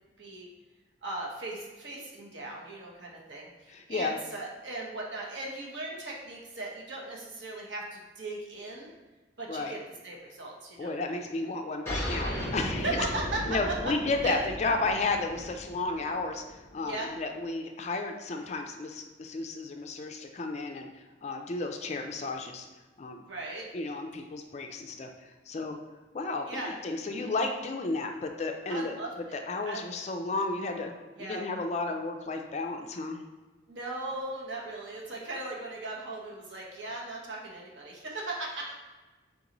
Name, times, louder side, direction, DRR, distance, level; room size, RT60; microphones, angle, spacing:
voice 1, 0.2-0.5 1.0-8.9 9.4-9.8 10.0-11.1 12.8-13.6 13.8-13.9 14.2-14.3 16.8-17.1 23.2-23.7 26.5-26.7 28.7-29.3 29.7-29.9 31.2-31.4 33.7-38.8, right 2 dB, 70° right, -2 dB, 0.9 m, -38 dB
voice 2, 3.7-4.2 9.5-9.8 10.8-12.8 13.5-16.4 16.7-20.9 21.2-22.7 23.0-23.2 23.7-25.1 25.5-25.8 26.1-29.0 29.3-30.9 31.2-33.2, left 3 dB, 35° left, 4 dB, 0.3 m, -32 dB
sound 1, 11.9-16.9, equal, 15° left, 0.7 m, -36 dB
3.9 x 3.8 x 2.9 m, 1.2 s
head